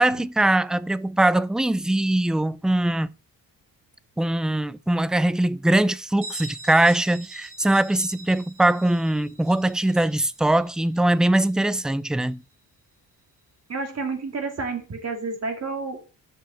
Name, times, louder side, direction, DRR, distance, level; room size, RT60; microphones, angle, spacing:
voice 1, 0.0-3.1 4.2-12.4, right 1 dB, ahead, 0.3 m, -21 dB
Bell, 6.2-11.7, right 3 dB, 75° right, 3.6 m, -44 dB
voice 2, 13.7-16.1, right 4 dB, 40° right, 2.3 m, -30 dB
6.1 x 5.8 x 5.8 m
cardioid pair, 95°, 40 cm